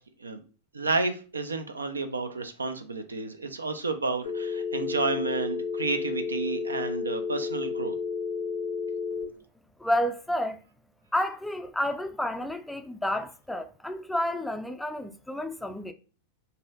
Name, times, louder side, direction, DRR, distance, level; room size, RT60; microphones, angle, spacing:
voice 1, 0.7-8.0, right 3 dB, 75° right, 0.4 m, -31 dB
Telephone, 4.2-9.2, left 5 dB, 60° left, 0.6 m, -32 dB
voice 2, 9.8-10.6 11.1-15.9, left 1 dB, 5° left, 0.3 m, -30 dB
4.0 x 2.7 x 2.3 m
figure-of-eight pair, 90°, 0 cm